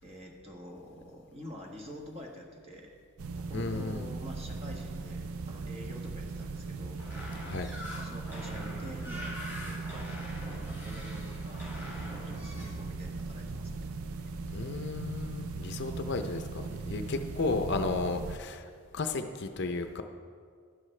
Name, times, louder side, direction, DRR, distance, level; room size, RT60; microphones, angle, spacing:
voice 1, 0.0-2.9 3.3-7.0 7.3-7.4 8.0-10.4 10.6-13.9, equal, 25° right, 0 dB, 1.3 m, -47 dB
sound 1, 3.2-18.4, right 3 dB, 75° right, 0.5 m, -39 dB
voice 2, 3.5-4.1 7.4-7.7 14.5-18.7 18.9-20.0, left 3 dB, 50° left, 7 dB, 0.5 m, -33 dB
sound 2, 7.0-12.7, left 1 dB, 10° right, 3.0 m, -44 dB
12.5 x 11.5 x 3.3 m, 2.1 s
head